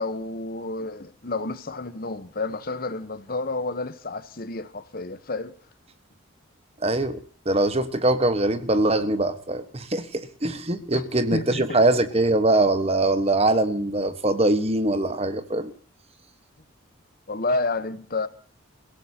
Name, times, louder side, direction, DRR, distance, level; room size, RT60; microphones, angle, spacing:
voice 1, 0.0-5.5 10.9-11.0 11.3-11.8 17.3-18.3, left 3 dB, 45° left, 1.0 m, -30 dB
voice 2, 6.8-7.2 7.4-15.7, right 2 dB, 30° right, 1.3 m, -22 dB
29.0 x 17.0 x 2.8 m
head